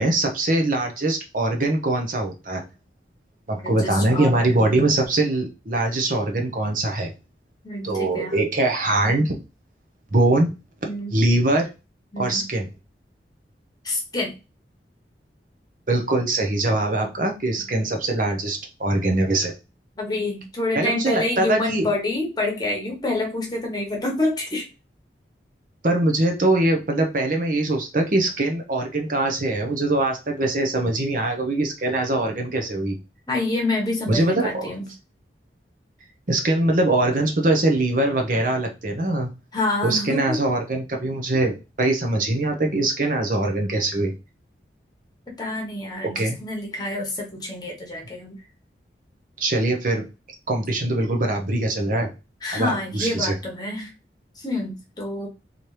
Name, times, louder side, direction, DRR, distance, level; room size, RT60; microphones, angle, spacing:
voice 1, 0.0-2.6 3.5-7.1 7.8-9.4 10.1-10.5 11.1-11.7 12.2-12.7 15.9-19.5 20.7-21.9 25.8-33.0 34.1-34.7 36.3-39.3 39.8-44.1 46.1-46.4 49.4-50.0 50.5-52.1 52.5-53.3, right 2 dB, 50° right, 3 dB, 0.8 m, -22 dB
voice 2, 3.6-4.5 7.6-8.4 10.8-11.2 12.1-12.5 13.8-14.3 19.9-24.7 33.3-34.9 39.5-40.4 45.3-48.4 52.4-53.9 54.3-55.3, left 2 dB, 25° left, 0 dB, 1.1 m, -27 dB
4.0 x 3.0 x 3.3 m, 0.28 s
head